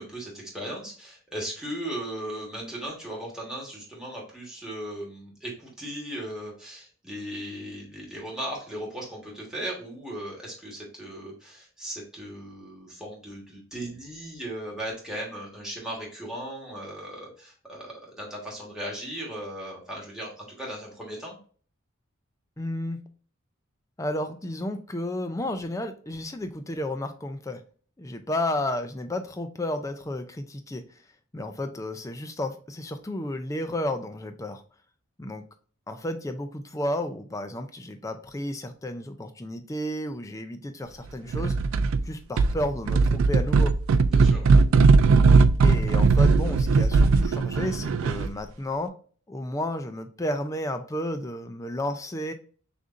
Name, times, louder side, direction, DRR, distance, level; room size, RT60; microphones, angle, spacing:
voice 1, 0.0-21.4 44.1-44.6, right 1 dB, 5° right, -3 dB, 1.4 m, -37 dB
voice 2, 22.6-23.0 24.0-27.6 28.0-30.8 31.3-34.6 35.2-35.4 35.9-41.5 42.0-43.7 45.6-48.9 49.3-52.3, left 1 dB, 15° left, 7 dB, 0.4 m, -32 dB
sound 1, 41.3-42.0 42.4-48.4, right 4 dB, 70° right, 0.3 m, -19 dB
6.3 x 2.6 x 2.5 m, 0.43 s
head